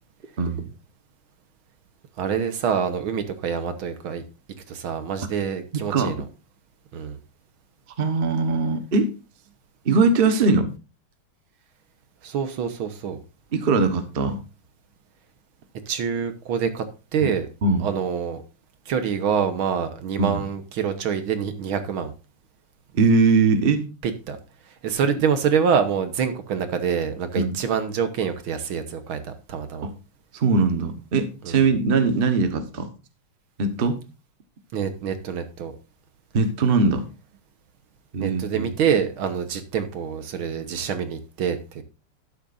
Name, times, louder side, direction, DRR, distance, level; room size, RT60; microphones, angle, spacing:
voice 1, 2.2-4.2 4.7-6.1 6.9-7.2 12.2-13.2 15.9-17.5 17.8-18.4 18.9-22.1 24.0-24.4 24.8-29.9 31.4-31.6 34.7-35.7 38.2-41.8, right 7 dB, 70° right, 9 dB, 1.9 m, -26 dB
voice 2, 5.7-6.1 8.0-9.1 9.8-10.7 13.5-14.4 17.2-17.3 17.6-17.9 20.2-20.4 22.9-23.8 27.3-27.6 29.8-29.9 30.3-32.9 33.6-34.0 36.3-37.1 38.1-38.7, right 4 dB, 35° right, 8 dB, 1.1 m, -21 dB
12.0 x 9.9 x 2.6 m, 0.31 s
omnidirectional pair, 2.4 m